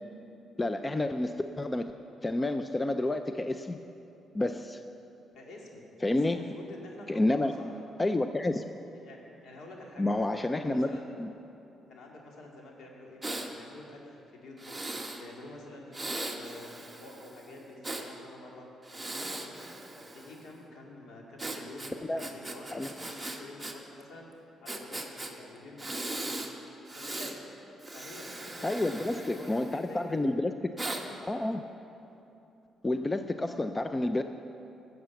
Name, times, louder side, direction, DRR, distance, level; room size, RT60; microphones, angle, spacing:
voice 1, 0.6-1.9 2.2-3.8 4.3-4.8 6.0-6.4 7.1-7.5 8.0-8.8 10.0-10.9 11.2-11.3 22.1-22.2 22.7-22.9 28.6-30.5 31.3-31.6 32.8-34.2, left 2 dB, 20° left, 8 dB, 0.5 m, -29 dB
voice 2, 5.3-5.9 6.2-7.8 8.9-10.2 10.6-11.1 11.9-18.7 19.0-26.3 26.9-27.4 27.9-30.3 30.9-31.2, left 2 dB, 70° left, -1 dB, 2.5 m, -48 dB
Breathing, 13.2-13.5 14.6-15.2 15.9-18.1 18.8-20.5 21.4-23.7 24.0-24.1 24.7-25.3 25.8-26.5 26.9-27.4 27.8-30.0 30.8-31.0, right 2 dB, 10° right, 1.3 m, -39 dB
13.5 x 7.7 x 7.1 m, 2.9 s
cardioid pair, 90°, 0 cm